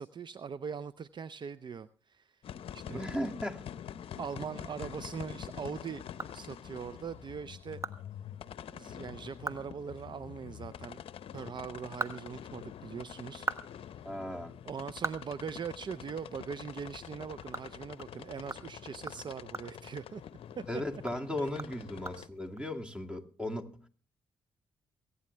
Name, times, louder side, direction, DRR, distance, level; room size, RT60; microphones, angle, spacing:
voice 1, 0.0-2.4 2.7-3.1 4.2-6.0 6.3-7.8 8.7-11.0 11.3-13.5 13.8-14.0 14.7-20.2 20.6-20.8 21.4-21.5, right 6 dB, 50° right, 0.5 m, -41 dB
sound 1, 2.4-22.3, left 9 dB, 65° left, 0.6 m, -46 dB
voice 2, 2.9-3.6 14.0-14.5 20.7-23.9, left 1 dB, 10° right, 2.2 m, -37 dB
sound 2, 6.2-6.9 7.3-7.4 7.8-8.0 8.3-8.4 8.8-8.9 9.3-9.7 10.0-10.1 11.6-12.9 13.2-16.2 16.5-16.6 17.0-20.6 20.9-22.6, right 3 dB, 25° right, 1.3 m, -42 dB
23.5 x 9.6 x 3.3 m
supercardioid pair, 45°, 10 cm